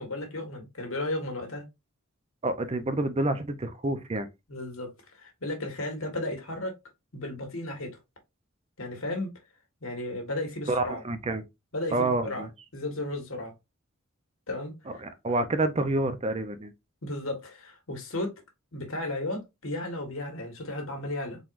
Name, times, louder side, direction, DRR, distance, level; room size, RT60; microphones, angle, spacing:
voice 1, 0.0-1.6 4.5-6.8 7.1-8.0 8.8-9.3 9.8-11.0 11.7-12.5 12.7-13.5 14.5-15.0 17.0-18.3 18.7-21.4, left 1 dB, 80° left, 1.6 m, -34 dB
voice 2, 2.4-4.3 10.7-11.4 11.9-12.5 15.0-16.7, right 2 dB, 30° right, 0.6 m, -28 dB
4.4 x 4.0 x 2.5 m
head